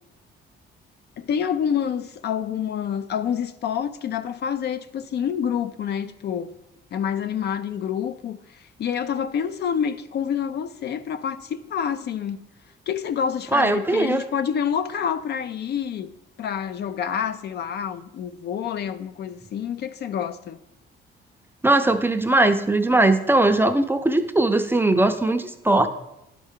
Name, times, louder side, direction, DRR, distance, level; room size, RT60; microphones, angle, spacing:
voice 1, 1.2-6.5 6.9-12.5 12.9-16.1 16.4-20.6, left 8 dB, 55° left, 0.4 m, -27 dB
voice 2, 13.5-14.2 21.6-25.9, right 2 dB, 10° right, 0.5 m, -19 dB
10.5 x 4.5 x 3.6 m
cardioid pair, 90°, 20 cm